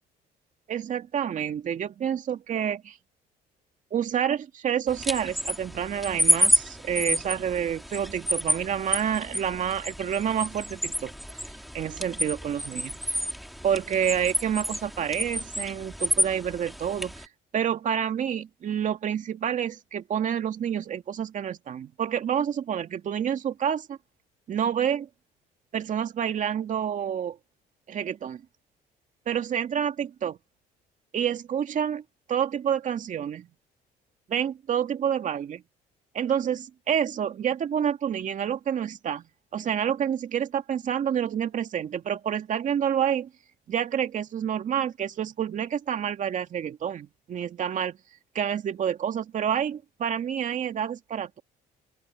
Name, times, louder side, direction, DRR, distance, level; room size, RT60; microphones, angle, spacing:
voice 1, 0.7-3.0 3.9-11.1 11.7-13.2 13.6-24.0 24.5-25.1 25.7-27.4 27.9-28.4 29.3-30.4 31.1-32.0 32.3-33.5 34.3-35.6 36.1-39.2 39.5-43.3 43.7-48.0 48.3-51.4, right 9 dB, 50° right, 2.2 m, -28 dB
sound 1, 4.9-17.3, equal, ahead, 3.8 m, -29 dB
open air
cardioid pair, 110°, 17 cm